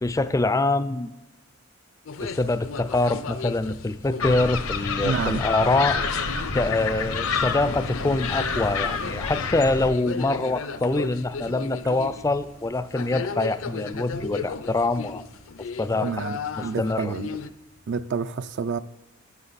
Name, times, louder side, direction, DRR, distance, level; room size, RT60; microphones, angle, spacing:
voice 1, 0.0-1.1 2.2-6.0 6.5-15.2 15.8-16.2 16.6-17.1, left 2 dB, 15° left, 0.3 m, -25 dB
sound 1, 2.1-17.5, left 4 dB, 70° left, 0.5 m, -36 dB
Motorcycle, 2.7-17.9, right 2 dB, 75° right, 1.7 m, -51 dB
sound 2, 4.2-9.9, left 5 dB, 85° left, 0.9 m, -28 dB
voice 2, 5.0-5.4 16.0-17.4 17.9-18.8, right 5 dB, 55° right, 0.4 m, -29 dB
11.0 x 9.9 x 4.1 m
head